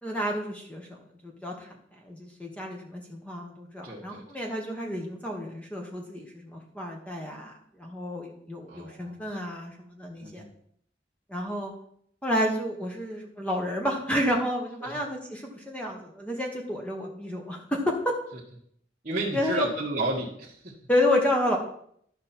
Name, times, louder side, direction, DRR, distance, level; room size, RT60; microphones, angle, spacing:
voice 1, 0.0-1.7 2.0-7.5 7.8-10.4 11.3-11.7 12.2-18.1 19.3-19.7 20.9-21.6, left 1 dB, 5° left, 1 dB, 1.2 m, -30 dB
voice 2, 3.8-4.2 8.7-9.3 10.2-10.5 14.8-15.0 19.0-20.7, right 2 dB, 40° right, -6 dB, 1.4 m, -32 dB
12.0 x 5.3 x 4.4 m, 0.67 s
head